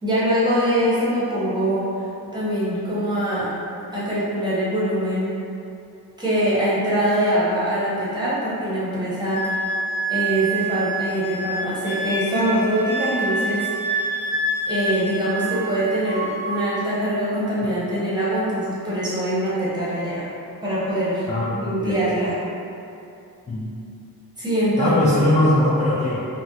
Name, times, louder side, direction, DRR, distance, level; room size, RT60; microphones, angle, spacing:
voice 1, 0.0-2.0 2.3-3.6 3.9-5.4 6.2-9.6 10.1-13.7 14.7-20.2 20.6-21.3 21.5-22.4 24.4-25.0, right 1 dB, 10° right, -10 dB, 0.7 m, -23 dB
Wind instrument woodwind instrument, 9.3-15.8 16.1-16.7, right 2 dB, 75° left, 0.6 m, -27 dB
voice 2, 21.3-22.1 23.5-23.7 24.8-26.3, left 1 dB, 20° left, -9 dB, 0.3 m, -20 dB
3.4 x 2.0 x 2.7 m, 2.7 s
wide cardioid pair, 160°, 38 cm